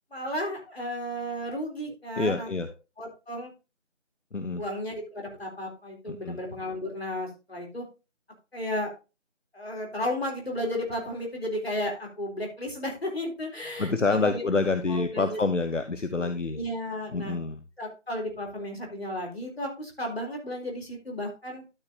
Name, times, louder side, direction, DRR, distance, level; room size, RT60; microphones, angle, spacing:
voice 1, 0.1-2.5 3.0-3.5 4.5-7.9 8.5-8.9 9.5-14.4 14.9-15.4 16.2-17.4 17.8-21.6, left 1 dB, 55° left, 1 dB, 3.7 m, -33 dB
voice 2, 2.2-2.7 4.3-4.6 6.1-6.4 13.8-16.6 17.1-17.6, left 3 dB, 80° left, 9 dB, 1.0 m, -27 dB
12.5 x 6.5 x 2.8 m, 0.29 s
figure-of-eight pair, 170°, 37 cm